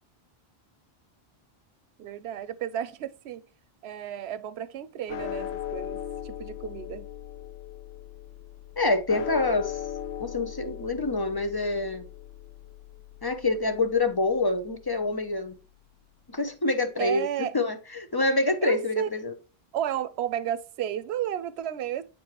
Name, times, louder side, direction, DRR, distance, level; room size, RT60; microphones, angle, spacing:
voice 1, 2.0-3.4 3.8-7.1 17.0-17.5 18.6-19.1 19.7-22.0, right 10 dB, 85° right, 0.8 m, -32 dB
sound 1, 5.1-15.5, left 10 dB, 90° left, 0.9 m, -39 dB
voice 2, 8.8-9.8 10.2-12.1 13.2-15.6 16.3-19.3, left 2 dB, 30° left, 0.5 m, -26 dB
7.4 x 4.8 x 2.9 m
omnidirectional pair, 1.0 m